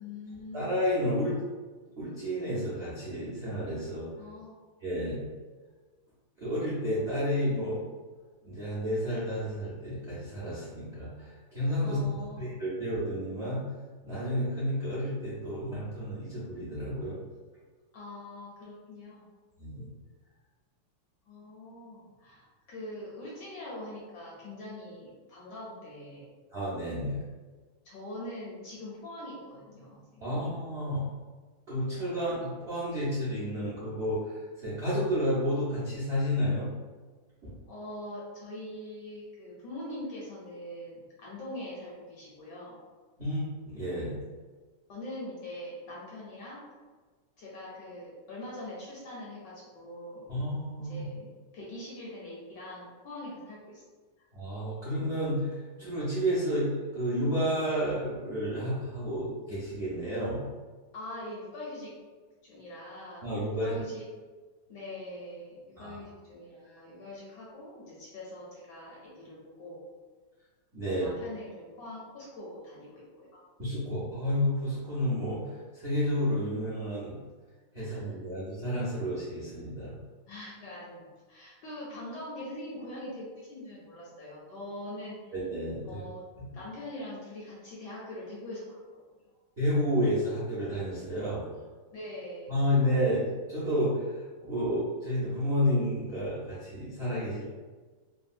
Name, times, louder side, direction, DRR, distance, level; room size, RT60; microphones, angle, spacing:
voice 1, 0.0-0.7 4.2-4.5 11.8-12.4 17.9-19.3 21.3-26.2 27.8-30.5 37.7-42.8 44.9-46.6 47.4-50.2 50.8-53.8 60.9-61.9 62.4-63.2 63.5-64.0 64.7-69.8 70.9-73.4 77.8-78.0 80.3-85.3 85.8-86.2 86.5-88.8 91.9-92.7, left 1 dB, 70° left, -5 dB, 1.1 m, -43 dB
voice 2, 0.5-1.4 2.0-4.1 4.8-5.1 6.4-7.8 8.4-13.6 14.0-17.2 19.6-19.9 26.5-27.2 30.2-31.0 31.7-36.7 37.4-37.5 43.2-44.1 50.3-51.0 54.3-60.4 63.2-63.8 65.8-66.0 70.7-71.1 73.6-77.1 77.7-79.9 85.3-86.0 89.6-91.4 92.5-97.5, equal, 55° right, -10 dB, 0.6 m, -31 dB
3.4 x 2.2 x 2.6 m, 1.4 s
omnidirectional pair, 2.4 m